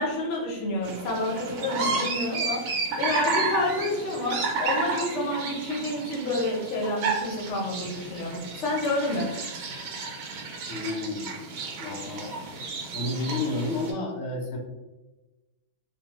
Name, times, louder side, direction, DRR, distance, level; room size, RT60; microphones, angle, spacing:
voice 1, 0.0-2.6 3.0-9.3, left 2 dB, 60° left, -2 dB, 0.8 m, -29 dB
sound 1, 0.8-13.9, right 3 dB, 70° right, 0.8 m, -32 dB
voice 2, 10.7-11.4 11.8-12.3 12.9-14.6, left 2 dB, 85° left, 0 dB, 0.6 m, -31 dB
2.6 x 2.2 x 2.9 m, 1.1 s
omnidirectional pair, 1.8 m